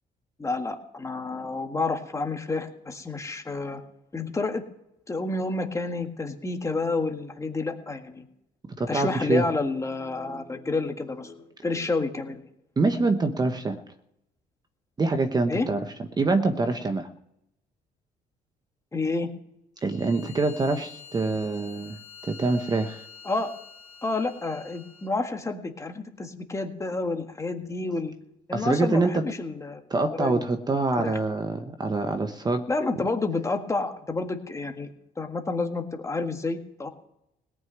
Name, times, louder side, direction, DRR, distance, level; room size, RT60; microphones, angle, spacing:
voice 1, 0.4-3.8 4.1-4.6 5.1-8.3 8.9-12.4 15.5-15.7 18.9-19.3 23.2-23.5 24.0-28.1 28.5-29.8 30.1-30.4 31.0-31.2 32.7-34.9 35.2-36.9, left 3 dB, 20° left, 5 dB, 1.8 m, -29 dB
voice 2, 8.7-9.5 12.8-13.8 15.0-15.8 16.2-17.1 19.8-23.0 28.5-29.4 29.9-32.6, right 3 dB, 25° right, 7 dB, 1.0 m, -25 dB
Bowed string instrument, 19.8-25.1, left 6 dB, 70° left, 2.9 m, -47 dB
18.0 x 6.3 x 9.4 m, 0.82 s
cardioid pair, 110°, 17 cm